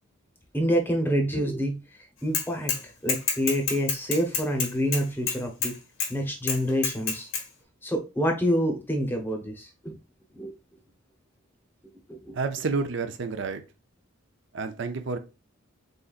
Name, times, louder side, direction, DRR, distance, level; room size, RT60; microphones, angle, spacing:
voice 1, 0.5-1.8 2.2-5.7 6.1-7.3 7.8-10.0 10.3-10.5 12.1-12.4, equal, 10° left, 0.8 m, -27 dB
Bicycle / Mechanisms, 2.3-2.8 3.1-5.7 6.0-6.1 6.5-7.4, left 5 dB, 85° left, 1.4 m, -27 dB
voice 2, 12.3-13.6 14.5-15.2, right 4 dB, 60° right, 0.5 m, -29 dB
3.9 x 3.9 x 2.4 m
head